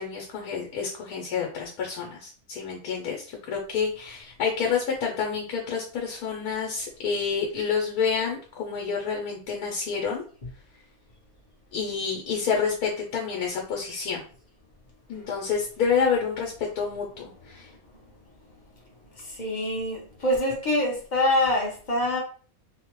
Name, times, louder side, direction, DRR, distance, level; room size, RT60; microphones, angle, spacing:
voice 1, 0.0-10.2 11.7-14.2 15.1-17.7, left 6 dB, 85° left, 1.1 m, -28 dB
voice 2, 19.2-22.2, left 1 dB, 40° left, 0.7 m, -25 dB
2.8 x 2.0 x 2.9 m
omnidirectional pair, 1.6 m